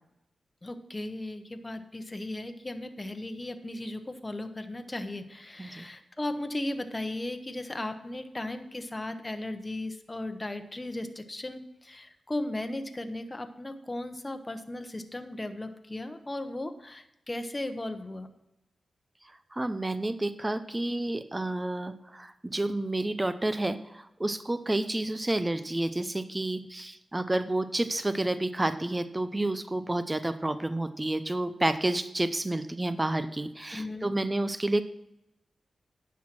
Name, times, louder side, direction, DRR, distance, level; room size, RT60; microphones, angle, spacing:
voice 1, 0.6-18.3 33.7-34.1, left 1 dB, 25° left, 7 dB, 1.0 m, -36 dB
voice 2, 19.5-34.8, right 1 dB, 20° right, 12 dB, 0.6 m, -30 dB
10.0 x 6.3 x 6.0 m, 0.86 s
cardioid pair, 65°, 0 cm